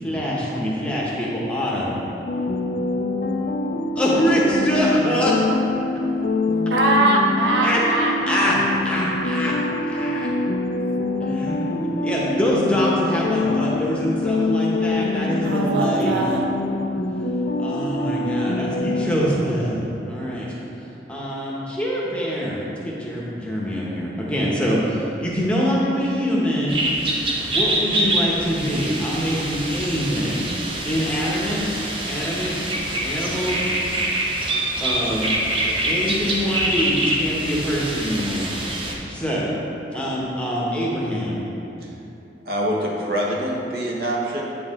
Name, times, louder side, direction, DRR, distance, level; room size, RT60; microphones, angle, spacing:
voice 1, 0.0-2.0 4.0-5.4 7.6-7.8 8.3-8.6 8.8-9.5 9.9-10.3 11.2-16.2 17.6-20.5 21.1-26.8 27.5-30.5 30.8-31.7 32.1-32.6 33.0-33.7 34.8-35.3 35.6-39.5 39.9-41.4, equal, 5° left, -5 dB, 0.9 m, -24 dB
sound 1, 2.3-19.1, left 2 dB, 40° left, 0.4 m, -24 dB
voice 2, 6.7-8.6 15.4-16.4, right 2 dB, 70° right, 0 dB, 0.6 m, -21 dB
sound 2, 26.7-38.9, right 1 dB, 30° right, 0.6 m, -25 dB
voice 3, 42.4-44.4, equal, 55° right, -3 dB, 1.0 m, -25 dB
8.7 x 4.7 x 3.6 m, 2.9 s
head